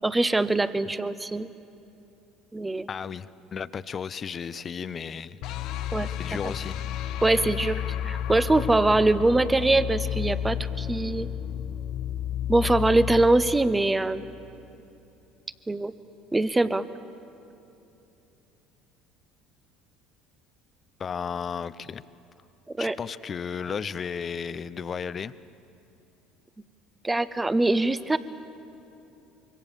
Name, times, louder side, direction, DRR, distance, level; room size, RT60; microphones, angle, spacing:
voice 1, 0.0-1.5 2.5-2.9 5.9-6.1 7.2-11.3 12.5-14.3 15.7-15.9 16.3-16.8 22.8-22.9 27.0-28.2, right 2 dB, 15° right, 14 dB, 1.0 m, -23 dB
voice 2, 2.9-5.4 6.2-6.9 21.0-22.0 22.8-25.3, left 6 dB, 40° left, 16 dB, 0.7 m, -34 dB
sound 1, 5.4-14.5, left 9 dB, 65° left, 1.0 m, -32 dB
25.5 x 23.5 x 7.2 m, 2.9 s
hypercardioid pair, 70°, 0 cm